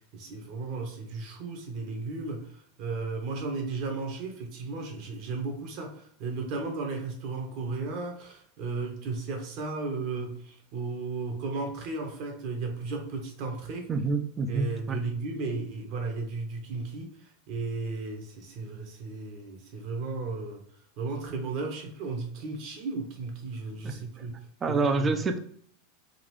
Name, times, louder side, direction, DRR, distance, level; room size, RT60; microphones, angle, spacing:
voice 1, 0.1-13.9 14.5-17.1 17.5-20.6 21.0-24.4 24.7-25.2, right 3 dB, 50° right, 3 dB, 1.1 m, -34 dB
voice 2, 13.9-15.0 23.8-24.2 24.6-25.4, right 3 dB, 20° right, 8 dB, 0.5 m, -28 dB
3.9 x 2.6 x 3.2 m, 0.63 s
supercardioid pair, 130°, 0 cm